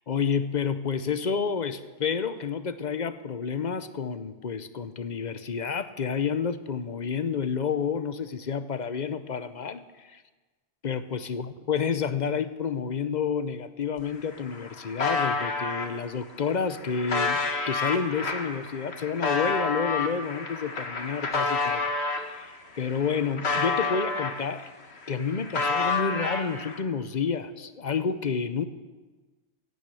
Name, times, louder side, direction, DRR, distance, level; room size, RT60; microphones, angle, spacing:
voice 1, 0.1-10.2 10.8-17.4 17.7-21.9 22.2-24.7 25.1-28.7, left 6 dB, 45° left, 12 dB, 0.8 m, -30 dB
sound 1, 14.0-14.1 14.3-15.9 16.5-22.3 22.7-24.7 25.0-26.8, left 4 dB, 80° left, 1.9 m, -29 dB
16.0 x 9.5 x 8.4 m, 1.3 s
omnidirectional pair, 1.1 m